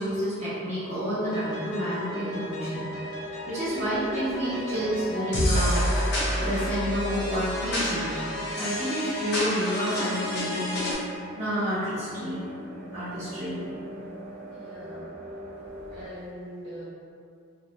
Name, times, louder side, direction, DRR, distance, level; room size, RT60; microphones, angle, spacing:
voice 1, 0.0-3.1 3.5-5.9 6.4-8.2 8.6-10.8 11.3-12.4 12.9-13.6, equal, 35° right, -12 dB, 0.8 m, -29 dB
sound 1, 1.0-16.1, equal, 10° left, 0.4 m, -42 dB
sound 2, 1.3-10.9, left 1 dB, 55° left, 0.6 m, -30 dB
sound 3, 4.1-9.1, right 1 dB, 55° right, 0.4 m, -40 dB
voice 2, 14.5-15.1 15.9-16.8, equal, 75° right, -11 dB, 1.1 m, -42 dB
2.4 x 2.0 x 3.0 m, 2.4 s
head